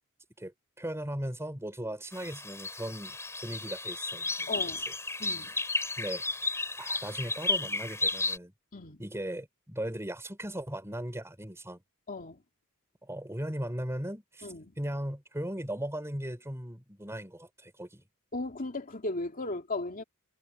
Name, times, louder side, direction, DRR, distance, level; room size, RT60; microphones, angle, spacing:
voice 1, 0.4-3.2 3.4-4.5 6.0-6.2 6.8-8.5 9.0-11.8 13.0-18.0, right 1 dB, 10° right, 5.0 m, -37 dB
sound 1, 2.1-8.4, left 3 dB, 10° left, 5.1 m, -33 dB
voice 2, 4.5-4.8 5.2-5.5 8.7-9.0 12.1-12.4 14.4-14.7 18.3-20.0, left 2 dB, 40° left, 2.7 m, -36 dB
head